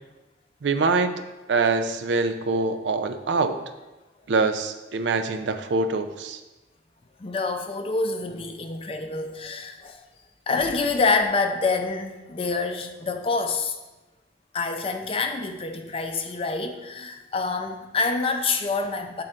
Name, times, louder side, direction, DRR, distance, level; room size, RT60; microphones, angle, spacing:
voice 1, 0.6-1.1 1.5-3.6 4.3-6.4, right 3 dB, 70° right, 9 dB, 0.5 m, -24 dB
voice 2, 7.2-10.0 10.5-13.8 14.5-19.2, left 4 dB, 30° left, 5 dB, 0.5 m, -27 dB
7.7 x 3.8 x 4.3 m, 1.1 s
head